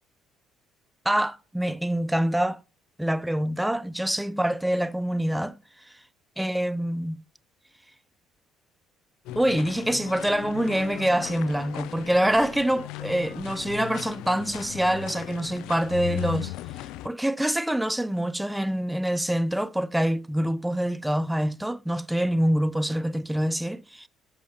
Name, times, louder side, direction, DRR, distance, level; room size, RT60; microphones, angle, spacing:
voice 1, 1.1-2.6 3.0-5.6 6.4-7.2 9.4-16.5 17.0-24.1, right 1 dB, 5° right, 0.4 m, -25 dB
sound 1, 9.3-17.1, left 15 dB, 85° left, 0.3 m, -37 dB
13.5 x 6.2 x 2.8 m
cardioid pair, 110°, 0 cm